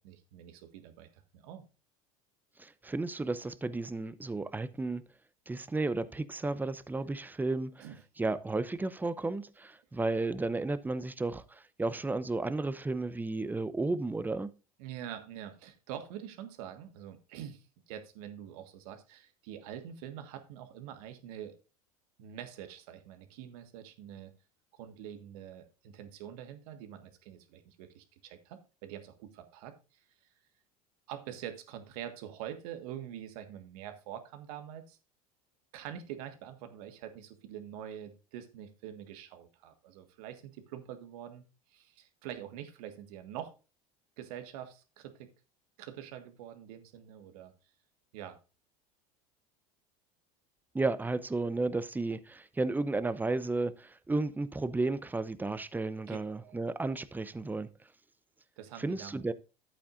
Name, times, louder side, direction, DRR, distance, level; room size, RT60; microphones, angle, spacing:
voice 1, 0.0-1.7 7.8-8.0 14.8-21.6 22.2-24.3 24.7-30.0 31.1-35.0 35.7-43.5 44.2-45.3 45.8-47.5 48.1-48.4 56.1-56.6 58.6-59.2, right 10 dB, 70° right, 1.6 m, -45 dB
voice 2, 2.6-5.0 5.5-7.8 8.2-14.5 50.7-57.7 58.8-59.3, right 3 dB, 10° right, 0.6 m, -33 dB
11.5 x 8.5 x 2.6 m
hypercardioid pair, 90°, 20 cm